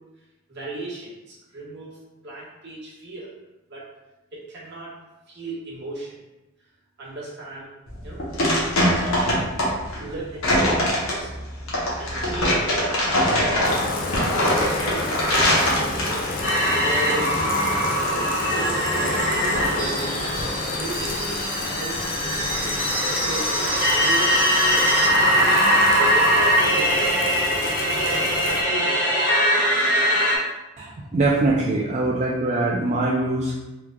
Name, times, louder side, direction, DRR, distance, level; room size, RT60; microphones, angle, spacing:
voice 1, 0.5-3.3 3.7-3.9 4.3-5.0 5.3-6.2 7.0-7.7 8.0-8.2 9.0-9.4 10.0-11.4 12.0-13.5 14.4-16.2 16.8-17.5 18.0-21.4 21.8-22.8 23.1-25.1 25.6-30.0, right 1 dB, 55° right, -6 dB, 1.1 m, -36 dB
sound 1, 7.9-16.4, equal, 80° left, 0.9 m, -22 dB
Bathtub (filling or washing), 13.6-28.6, left 2 dB, 45° left, 0.4 m, -30 dB
sound 2, 16.4-30.4, equal, 65° left, 1.3 m, -21 dB
voice 2, 30.8-33.6, right 2 dB, 35° right, -4 dB, 0.3 m, -23 dB
3.5 x 3.1 x 2.2 m, 1.0 s
head